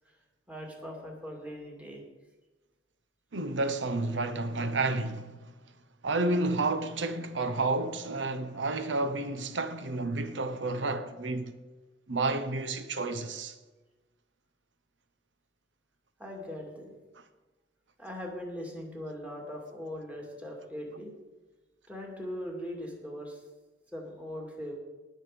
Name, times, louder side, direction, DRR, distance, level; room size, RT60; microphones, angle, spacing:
voice 1, 0.5-2.0 16.2-16.9 18.0-21.1 21.9-23.4 23.9-24.8, equal, 10° right, 2.5 m, -40 dB
voice 2, 3.3-5.4 6.0-11.6 12.1-13.5, right 2 dB, 85° right, 0.9 m, -30 dB
19.5 x 6.5 x 5.1 m
head